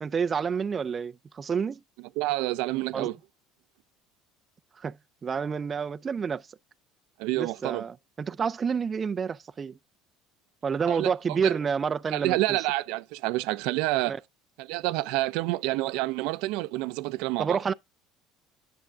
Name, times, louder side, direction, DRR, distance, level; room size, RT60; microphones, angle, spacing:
voice 1, 0.0-1.8 2.9-3.1 4.8-5.0 5.2-6.5 7.4-9.8 10.6-12.6 14.1-14.2 17.4-17.7, right 6 dB, 30° right, 0.4 m, -29 dB
voice 2, 2.2-3.1 7.2-7.8 10.9-11.6 12.1-14.1 14.6-17.6, right 18 dB, 80° right, 0.5 m, -28 dB
10.5 x 7.1 x 2.3 m
cardioid pair, 120°, 0 cm